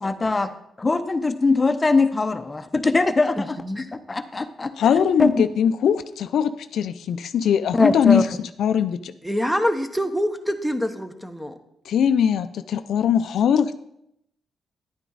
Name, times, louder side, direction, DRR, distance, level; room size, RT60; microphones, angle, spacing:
voice 1, 0.0-0.5 0.8-3.6 4.1-4.7 5.2-5.5 7.8-8.2, left 3 dB, 20° left, 10 dB, 0.7 m, -21 dB
voice 2, 3.4-3.9 9.2-11.6, equal, 5° right, 8 dB, 1.0 m, -26 dB
voice 3, 4.8-9.1 11.9-13.7, left 8 dB, 75° left, 11 dB, 0.4 m, -21 dB
10.5 x 9.2 x 4.0 m, 0.78 s
cardioid pair, 100°, 0 cm